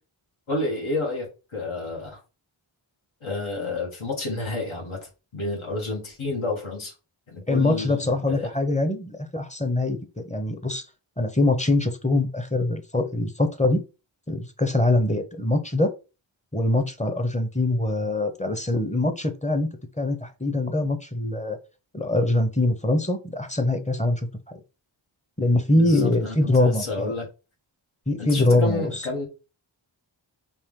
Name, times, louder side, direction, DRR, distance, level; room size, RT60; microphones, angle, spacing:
voice 1, 0.5-2.2 3.2-6.9 7.3-8.5 25.7-27.3 28.2-29.3, left 2 dB, 80° left, 1.9 m, -30 dB
voice 2, 7.5-10.8 11.2-13.8 14.3-15.9 16.5-19.7 20.0-21.6 21.9-24.6 25.4-27.1 28.1-29.1, left 2 dB, 15° left, 0.7 m, -23 dB
4.4 x 3.0 x 3.6 m
wide cardioid pair, 80°, 48 cm